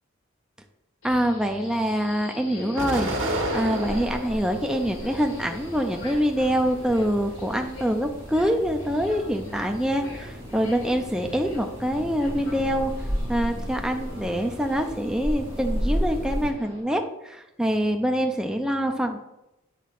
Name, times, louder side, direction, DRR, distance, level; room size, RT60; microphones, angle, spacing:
Subway metro underground, 1.0-16.8, left 1 dB, 75° left, 2.6 m, -43 dB
voice 1, 1.0-3.1 3.5-12.9 13.3-19.2, equal, 5° right, 4 dB, 0.5 m, -25 dB
Explosion, 2.8-4.4 4.9-5.8, right 1 dB, 70° right, 1.5 m, -30 dB
sound 1, 3.3-16.5, equal, 25° right, 2.3 m, -34 dB
8.3 x 3.6 x 5.9 m, 0.89 s
head